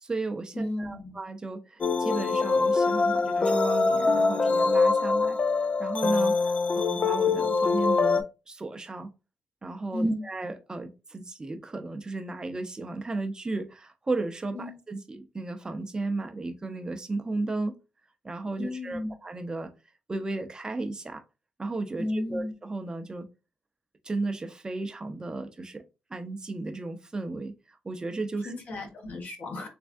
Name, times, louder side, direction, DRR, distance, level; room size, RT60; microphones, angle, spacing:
voice 1, 0.0-5.4 5.8-9.1 9.6-17.7 18.2-19.7 20.1-21.2 21.6-23.3 24.0-25.8 26.1-27.5 27.8-28.5, right 2 dB, 25° right, 0.7 m, -34 dB
voice 2, 0.5-1.1 9.9-10.2 14.5-14.8 18.6-19.1 22.0-22.5 28.4-29.7, left 1 dB, 60° left, 1.3 m, -34 dB
sound 1, 1.8-8.2, left 4 dB, 40° left, 0.4 m, -24 dB
3.4 x 3.2 x 2.5 m
cardioid pair, 80°, 3 cm